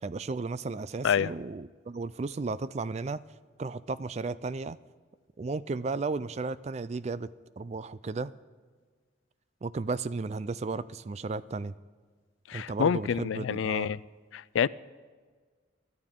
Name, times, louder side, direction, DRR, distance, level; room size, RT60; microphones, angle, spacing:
voice 1, 0.0-3.2 3.6-4.8 5.4-7.3 7.6-8.3 9.6-11.7 12.5-13.9, right 3 dB, 35° right, 16 dB, 0.3 m, -34 dB
voice 2, 12.5-14.0 14.3-14.7, left 7 dB, 85° left, 20 dB, 0.4 m, -27 dB
25.5 x 11.5 x 3.7 m, 1.5 s
head